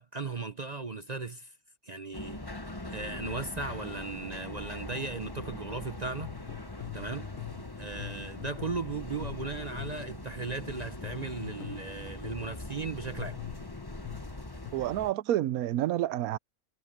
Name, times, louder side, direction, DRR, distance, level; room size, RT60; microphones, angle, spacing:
voice 1, 0.0-1.5 1.8-2.4 2.9-6.3 6.9-7.3 7.8-13.4, right 4 dB, 35° right, 0.8 m, -37 dB
sound 1, 2.1-15.1, left 2 dB, 15° left, 1.3 m, -42 dB
sound 2, 6.2-10.2 11.0-12.6 13.2-14.7, left 16 dB, 70° left, 1.2 m, -43 dB
voice 2, 14.7-16.4, right 13 dB, 85° right, 1.1 m, -29 dB
omnidirectional pair, 1.5 m